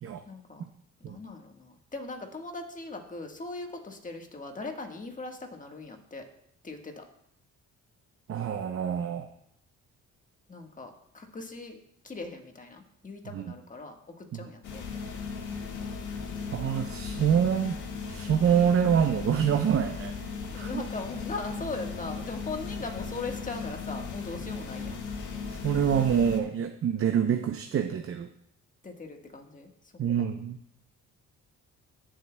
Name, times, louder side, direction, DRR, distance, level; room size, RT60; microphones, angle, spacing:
voice 1, 0.3-0.6 1.0-6.3 6.6-7.0 10.5-15.1 20.5-25.0 28.8-29.7 30.2-30.3, left 3 dB, 25° left, 4 dB, 1.4 m, -40 dB
voice 2, 8.3-9.3 13.3-13.4 14.3-14.4 16.5-17.8 18.1-20.1 20.5-20.7 25.5-28.3 30.0-30.6, right 8 dB, 45° right, 5 dB, 0.7 m, -26 dB
sound 1, 14.6-26.4, left 5 dB, 75° left, 1.7 m, -37 dB
15.0 x 7.7 x 2.2 m, 0.74 s
cardioid pair, 90°, 30 cm